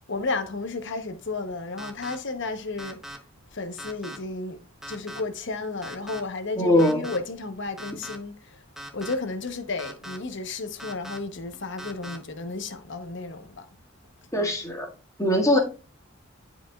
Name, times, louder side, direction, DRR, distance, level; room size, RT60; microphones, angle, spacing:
voice 1, 0.1-3.0 3.5-4.6 4.9-8.6 8.9-13.7, left 3 dB, 60° left, 1.0 m, -33 dB
sound 1, 1.8-2.2 2.8-3.2 3.8-4.2 4.8-5.2 5.8-6.2 6.8-7.2 7.8-8.2 8.8-9.1 9.8-10.2 10.8-11.2 11.8-12.2, right 1 dB, ahead, 0.9 m, -39 dB
voice 2, 6.6-7.1 14.3-14.9 15.2-15.6, left 1 dB, 15° left, 1.9 m, -21 dB
11.5 x 5.0 x 2.4 m
head